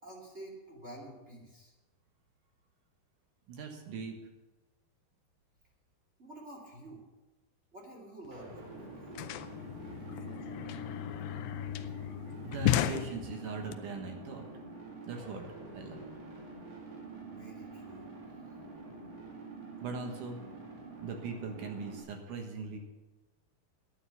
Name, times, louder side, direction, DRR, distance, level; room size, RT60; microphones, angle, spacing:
voice 1, 0.0-1.7 6.2-7.0 7.7-9.2 17.2-18.2, right 1 dB, 20° right, -2 dB, 1.8 m, -49 dB
voice 2, 3.5-4.2 10.3-10.8 12.4-14.5 15.0-15.5 15.7-16.0 19.8-20.4 21.0-22.8, right 4 dB, 60° right, 3 dB, 2.4 m, -40 dB
sound 1, 8.3-8.4 8.5-13.7, left 12 dB, 90° left, 2.9 m, -35 dB
sound 2, 8.3-22.0, right 3 dB, 45° right, 2.8 m, -47 dB
11.5 x 10.0 x 6.9 m, 1.1 s
omnidirectional pair, 4.9 m